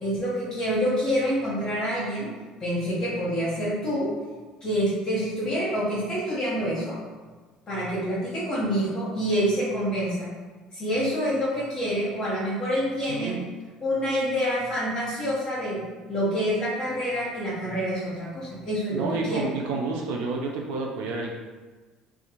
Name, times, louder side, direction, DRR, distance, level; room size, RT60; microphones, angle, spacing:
voice 1, 0.0-2.3 2.6-4.1 4.6-7.0 7.7-10.3 10.7-13.3 13.8-15.8 16.1-19.5, equal, 35° left, -9 dB, 1.0 m, -27 dB
voice 2, 18.9-21.3, right 4 dB, 80° right, 0 dB, 0.4 m, -29 dB
2.5 x 2.3 x 2.9 m, 1.3 s
supercardioid pair, 100°, 2 cm